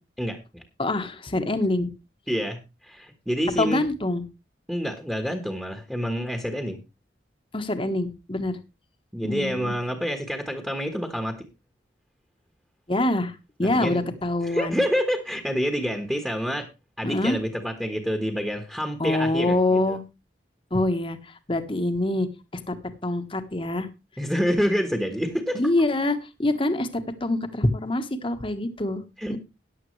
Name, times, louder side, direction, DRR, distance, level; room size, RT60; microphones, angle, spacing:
voice 1, 0.2-0.6 2.3-3.8 4.7-6.8 9.1-11.5 13.6-14.1 14.4-16.7 17.0-20.0 24.2-25.6 29.2-29.4, equal, 5° right, 5 dB, 1.3 m, -27 dB
voice 2, 0.8-1.9 3.6-4.2 7.5-8.6 9.2-9.7 12.9-13.3 13.6-14.8 17.0-17.4 19.0-20.0 20.7-21.2 21.5-22.3 22.7-22.8 23.0-23.9 25.5-26.9 27.2-29.0 29.3-29.4, left 2 dB, 30° left, 8 dB, 1.3 m, -25 dB
14.0 x 10.5 x 3.2 m, 0.26 s
head